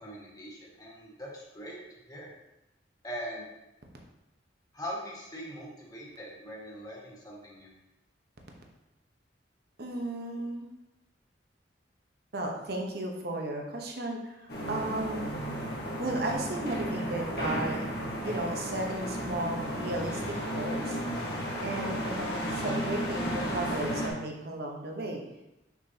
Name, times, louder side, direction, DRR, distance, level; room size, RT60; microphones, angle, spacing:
voice 1, 0.0-1.8 2.1-2.3 3.0-3.4 4.7-7.7, equal, 20° left, -4 dB, 1.6 m, -41 dB
voice 2, 9.8-10.7 12.3-15.3 16.0-17.9 18.2-20.2 20.5-21.0 21.6-25.2, right 1 dB, 60° right, 1 dB, 1.0 m, -34 dB
sound 1, 14.5-24.1, equal, 65° left, 1.5 m, -34 dB
6.0 x 5.9 x 2.8 m, 0.94 s
head